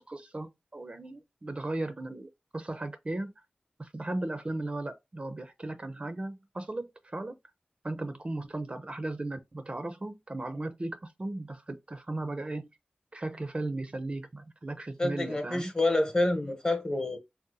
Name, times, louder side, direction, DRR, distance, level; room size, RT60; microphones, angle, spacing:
voice 1, 0.0-3.3 3.8-7.4 7.8-12.7 13.1-15.7, right 2 dB, 35° right, 0.4 m, -36 dB
voice 2, 15.0-17.2, left 2 dB, 25° left, 0.9 m, -28 dB
2.7 x 2.0 x 3.8 m
wide cardioid pair, 60°, 3 cm